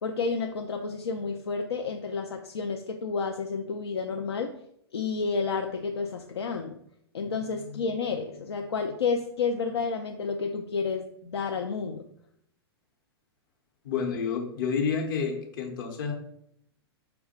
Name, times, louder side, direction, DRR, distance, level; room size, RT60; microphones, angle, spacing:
voice 1, 0.0-4.5 4.9-6.8 7.1-12.1, left 5 dB, 75° left, 3 dB, 0.4 m, -30 dB
voice 2, 13.8-16.1, left 6 dB, 55° left, 3 dB, 0.9 m, -29 dB
5.0 x 2.2 x 4.2 m, 0.73 s
figure-of-eight pair, 105°, 14 cm